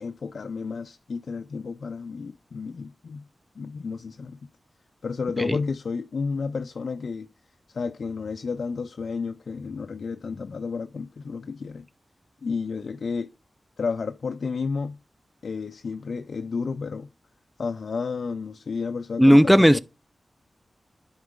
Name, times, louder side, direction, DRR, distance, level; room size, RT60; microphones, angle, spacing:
voice 1, 0.0-3.3 3.6-4.5 5.0-7.3 7.7-11.9 12.4-13.3 13.8-15.0 15.4-17.1 17.6-19.8, left 5 dB, 80° left, 0.3 m, -31 dB
voice 2, 19.2-19.8, equal, ahead, 0.4 m, -15 dB
10.0 x 3.9 x 3.6 m
cardioid pair, 50°, 0 cm